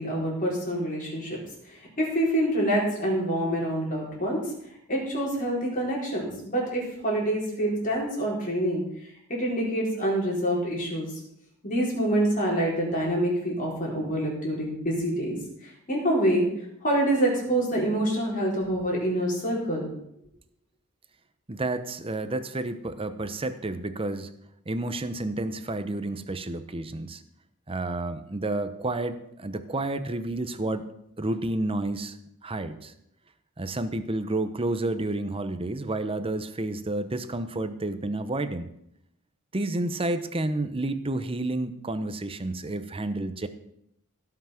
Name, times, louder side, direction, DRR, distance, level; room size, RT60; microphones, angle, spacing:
voice 1, 0.0-1.4 1.7-4.4 4.9-8.8 9.4-11.1 11.6-16.5 16.8-19.9, right 1 dB, 40° left, -3 dB, 4.6 m, -26 dB
voice 2, 21.5-24.3 24.7-27.2 27.7-30.9 31.2-32.2 32.4-32.9 33.6-38.7 39.5-43.5, right 2 dB, 25° right, 10 dB, 0.8 m, -30 dB
17.0 x 6.0 x 6.0 m, 0.77 s
head